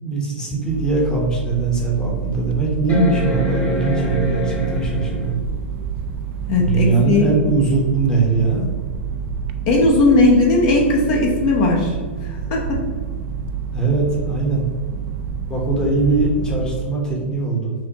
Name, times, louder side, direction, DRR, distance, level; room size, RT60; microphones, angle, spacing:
voice 1, 0.0-5.4 6.6-8.7 13.7-14.7 15.5-17.7, right 3 dB, 10° left, -3 dB, 0.9 m, -21 dB
sound 1, 0.7-0.8 1.4-1.5 2.9-5.4 7.1-7.2, right 1 dB, 30° left, 1.4 m, -24 dB
sound 2, 0.7-16.8, right 9 dB, 45° right, 0.3 m, -29 dB
sound 3, 2.1-10.4 10.7-16.9, right 1 dB, 70° right, 1.1 m, -34 dB
voice 2, 6.5-7.3 9.7-12.8, left 2 dB, 45° left, -1 dB, 0.8 m, -17 dB
5.7 x 2.1 x 2.8 m, 1.5 s
hypercardioid pair, 110°, 7 cm